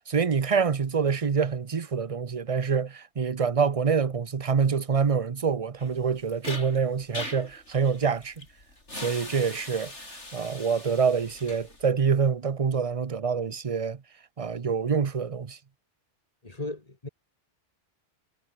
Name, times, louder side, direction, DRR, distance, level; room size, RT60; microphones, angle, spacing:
voice 1, 0.1-8.3 8.9-9.9 10.3-14.0 14.4-15.6, right 6 dB, 35° right, 0.7 m, -26 dB
sound 1, 5.8-11.9, left 2 dB, 80° left, 5.9 m, -41 dB
voice 2, 16.4-17.1, left 2 dB, 35° left, 2.3 m, -36 dB
omnidirectional pair, 1.2 m